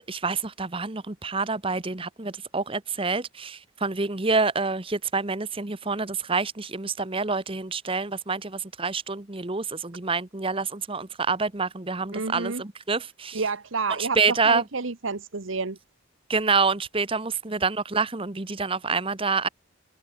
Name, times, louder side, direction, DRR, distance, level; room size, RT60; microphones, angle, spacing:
voice 1, 0.0-13.4 14.0-14.6 16.3-19.5, right 4 dB, 25° right, 1.1 m, -27 dB
voice 2, 12.1-12.6 13.3-15.8, right 4 dB, 75° right, 1.2 m, -29 dB
head